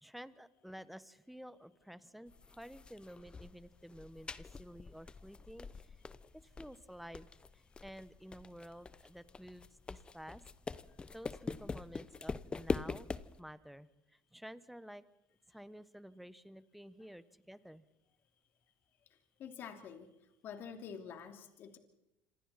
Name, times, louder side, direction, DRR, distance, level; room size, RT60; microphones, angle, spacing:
voice 1, 0.0-6.0 6.4-7.3 7.5-10.4 11.1-13.1 13.4-15.0 15.5-17.8, equal, ahead, 15 dB, 1.2 m, -52 dB
sound 1, 2.3-13.4, left 4 dB, 20° left, 0.9 m, -44 dB
voice 2, 19.4-20.1 20.4-21.8, left 7 dB, 50° left, 6 dB, 2.8 m, -47 dB
27.0 x 26.5 x 4.3 m, 0.91 s
supercardioid pair, 95°, 5 cm